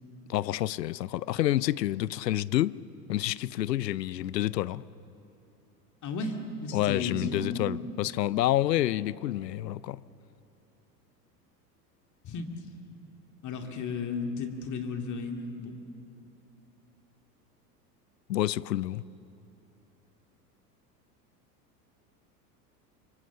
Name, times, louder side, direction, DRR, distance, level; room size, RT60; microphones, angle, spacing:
voice 1, 0.3-2.8 3.1-4.8 6.7-10.0 18.3-19.0, left 14 dB, 80° left, 0.6 m, -28 dB
voice 2, 6.0-7.8 12.2-12.5 13.4-15.7, left 4 dB, 35° left, 2.4 m, -34 dB
24.5 x 24.5 x 7.5 m
hypercardioid pair, 85°, 49 cm